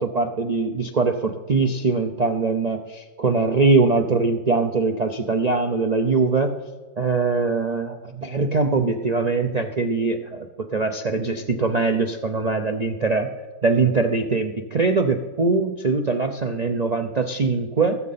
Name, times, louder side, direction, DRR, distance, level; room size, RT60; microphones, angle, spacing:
voice 1, 0.0-6.5 7.0-13.3 13.6-18.0, right 3 dB, 55° right, 5 dB, 0.4 m, -22 dB
19.5 x 7.5 x 4.1 m, 1.3 s
omnidirectional pair, 1.6 m